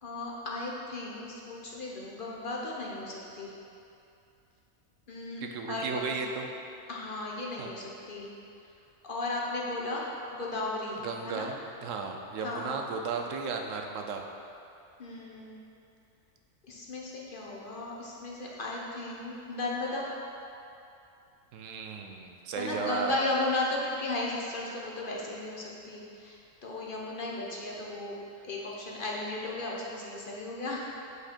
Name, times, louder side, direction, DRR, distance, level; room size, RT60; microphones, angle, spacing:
voice 1, 0.0-3.5 5.1-5.4 5.7-6.1 6.9-8.3 9.0-10.0 10.3-11.0 11.2-11.5 12.4-12.7 15.0-15.5 16.7-20.0 22.6-26.4 26.6-28.1 28.4-30.8, left 2 dB, 45° left, -3 dB, 1.0 m, -35 dB
voice 2, 5.4-6.5 7.6-7.7 11.0-14.2 21.5-23.2, right 5 dB, 80° right, 3 dB, 1.0 m, -35 dB
8.0 x 5.1 x 4.3 m, 2.7 s
omnidirectional pair, 1.3 m